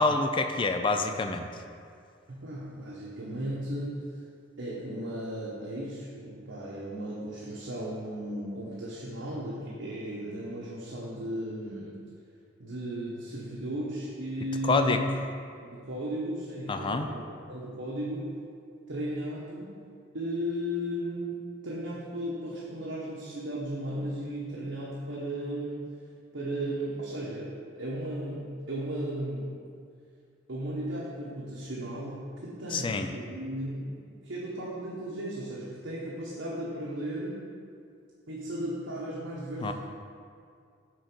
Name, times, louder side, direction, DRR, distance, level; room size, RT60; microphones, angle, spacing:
voice 1, 0.0-1.5 14.6-15.0 16.7-17.1 32.7-33.1 39.6-39.7, left 3 dB, 25° left, 6 dB, 0.4 m, -26 dB
voice 2, 2.3-4.2 4.6-11.9 12.6-15.2 15.6-18.3 18.9-19.7 20.1-25.9 26.3-29.6 30.5-37.4 38.3-39.7, right 1 dB, 80° right, -6 dB, 1.1 m, -35 dB
6.3 x 3.9 x 6.1 m, 2.3 s
head